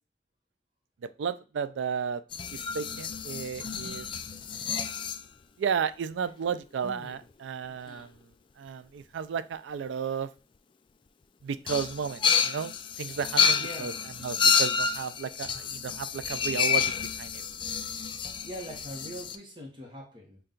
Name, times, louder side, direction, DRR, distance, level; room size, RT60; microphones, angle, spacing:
voice 1, 1.2-2.2 2.5-4.1 5.6-8.1 8.6-10.3 11.4-13.9 14.2-17.4, right 6 dB, 90° right, 14 dB, 0.4 m, -33 dB
sound 1, 2.3-5.2 6.5-6.6 6.8-7.1 7.9-8.0 11.7-19.4, left 6 dB, 30° left, 0.3 m, -29 dB
voice 2, 13.5-14.1 18.4-20.4, equal, 25° right, 1 dB, 0.9 m, -42 dB
5.4 x 2.3 x 3.8 m, 0.36 s
head